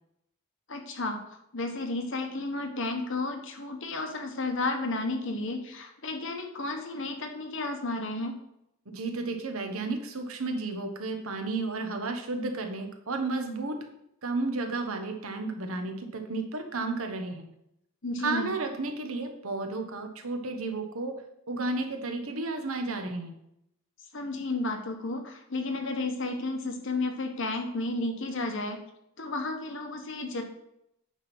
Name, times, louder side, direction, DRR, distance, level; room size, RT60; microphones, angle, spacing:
voice 1, 0.7-1.2 1.5-8.4 18.0-18.5 24.1-28.8 29.2-30.4, left 2 dB, 60° left, 4 dB, 1.2 m, -32 dB
voice 2, 8.9-13.8 14.2-17.5 18.2-21.1 21.5-23.3, right 3 dB, 75° right, 5 dB, 1.2 m, -32 dB
8.9 x 3.6 x 5.9 m, 0.79 s
head